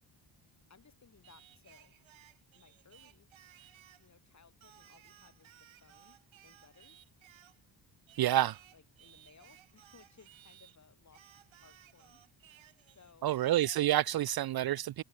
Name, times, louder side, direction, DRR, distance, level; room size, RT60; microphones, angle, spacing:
voice 1, 0.7-2.0 2.5-3.3 4.0-6.2 6.4-7.0 8.3-12.2 12.6-13.4, left 5 dB, 40° left, 4.7 m, -63 dB
Singing, 1.2-4.1 4.6-7.6 8.1-10.8 11.1-14.0, right 12 dB, 90° right, 4.9 m, -60 dB
voice 2, 8.2-8.6 13.2-15.0, right 13 dB, 55° right, 0.5 m, -28 dB
cardioid pair, 110°, 45 cm